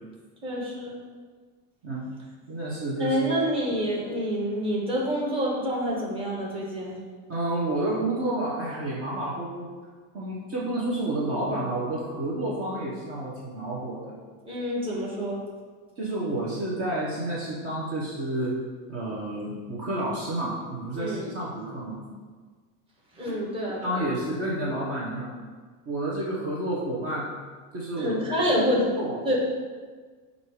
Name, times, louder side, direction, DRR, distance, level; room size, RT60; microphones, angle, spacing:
voice 1, 0.4-1.0 3.0-7.0 14.4-15.4 21.0-21.3 23.1-24.1 27.9-28.8 29.2-29.4, equal, 10° right, -5 dB, 1.3 m, -27 dB
voice 2, 2.5-3.2 7.3-9.7 10.1-14.2 16.0-18.6 18.9-22.0 23.8-25.3 25.8-27.3 27.7-28.6 29.0-29.2, right 1 dB, 30° right, -5 dB, 1.1 m, -30 dB
7.9 x 2.8 x 4.8 m, 1.5 s
supercardioid pair, 145°, 44 cm